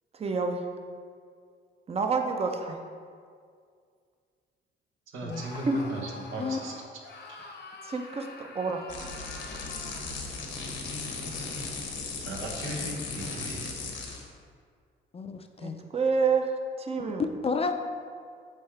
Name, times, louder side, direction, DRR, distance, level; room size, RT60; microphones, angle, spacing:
voice 1, 0.1-0.6 1.9-2.8 5.7-5.8 7.8-9.0 9.5-9.6 15.6-17.3, right 4 dB, 30° right, 4 dB, 0.6 m, -28 dB
voice 2, 5.1-6.8 7.3-7.4 12.2-13.7, right 2 dB, 85° right, -1 dB, 1.1 m, -37 dB
Screaming, 5.3-10.1, left 3 dB, 60° left, 0.8 m, -45 dB
sound 1, 8.9-14.3, left 4 dB, 85° left, 1.0 m, -36 dB
voice 3, 15.1-15.8 17.4-17.7, left 4 dB, 30° left, 6 dB, 0.4 m, -31 dB
8.3 x 3.5 x 3.3 m, 2.1 s
cardioid pair, 90°, 20 cm